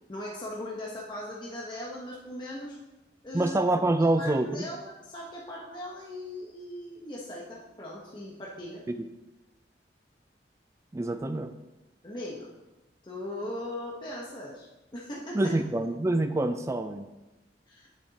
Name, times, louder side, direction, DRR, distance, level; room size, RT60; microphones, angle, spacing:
voice 1, 0.1-2.8 3.2-3.6 4.0-8.8 12.0-12.5 13.0-15.6 17.7-17.9, left 1 dB, 25° left, -4 dB, 1.0 m, -39 dB
voice 2, 3.3-4.7 9.0-9.1 10.9-11.5 15.3-17.1, right 2 dB, 15° right, 8 dB, 0.3 m, -26 dB
9.9 x 7.3 x 2.9 m, 1.0 s
head